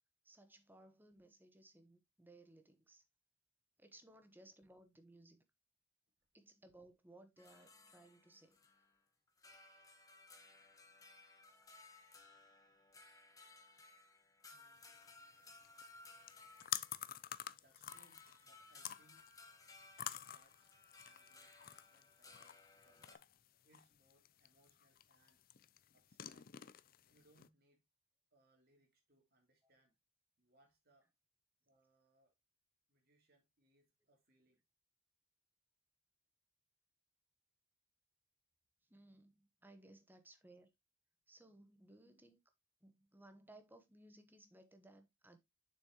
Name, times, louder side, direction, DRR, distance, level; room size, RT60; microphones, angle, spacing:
voice 1, 0.2-3.0 3.8-5.4 6.3-8.6 38.9-40.7 41.3-42.4 42.8-45.4, right 1 dB, 10° right, 0.9 m, -62 dB
sound 1, 7.4-9.0 9.3-17.5 17.9-23.2, left 3 dB, 15° left, 1.2 m, -61 dB
voice 2, 14.4-14.9 17.5-19.3 20.1-23.2 23.6-25.4 25.9-26.5 27.1-27.8 28.3-30.0 30.4-31.1 31.7-32.4 32.9-34.6, right 1 dB, 50° right, 2.8 m, -74 dB
sound 2, 14.8-27.5, left 11 dB, 45° left, 0.4 m, -50 dB
7.1 x 6.4 x 2.9 m
head